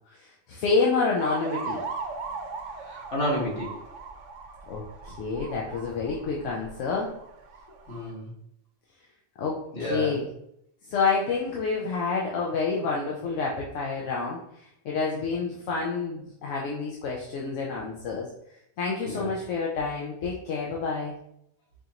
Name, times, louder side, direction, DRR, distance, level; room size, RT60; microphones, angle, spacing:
voice 1, 0.1-1.8 4.7-7.1 9.4-10.3 10.8-18.3 18.8-21.1, left 4 dB, 85° left, -2 dB, 1.0 m, -28 dB
sound 1, 1.2-8.1, right 4 dB, 80° right, 0.9 m, -38 dB
voice 2, 2.8-3.7 7.9-8.3 9.7-10.1 19.0-19.3, equal, 70° left, -5 dB, 1.6 m, -30 dB
4.8 x 2.5 x 2.8 m, 0.76 s
omnidirectional pair, 1.3 m